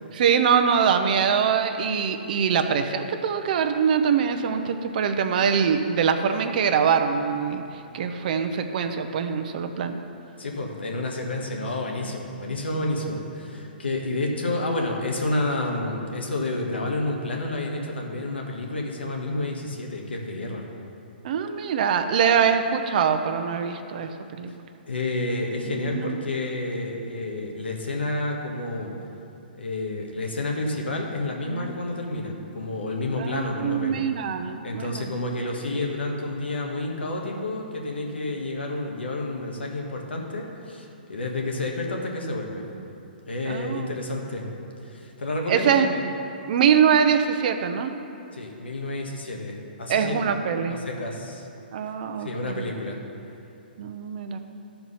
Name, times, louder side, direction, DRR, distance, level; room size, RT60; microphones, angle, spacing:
voice 1, 0.1-7.6 7.9-10.0 21.2-24.5 25.7-26.4 31.5-31.7 33.2-35.1 43.5-43.8 44.1-44.3 45.5-45.9 46.5-47.9 49.9-50.8 51.7-52.7 53.8-54.4, right 7 dB, 50° right, 6 dB, 0.7 m, -23 dB
voice 2, 10.4-20.7 24.8-28.9 29.5-34.1 34.6-42.6 43.3-44.4 44.8-46.0 48.3-50.2 50.7-51.5 52.2-53.0, left 2 dB, 90° left, 0 dB, 1.6 m, -30 dB
12.5 x 4.5 x 5.6 m, 2.7 s
hypercardioid pair, 145°, 6 cm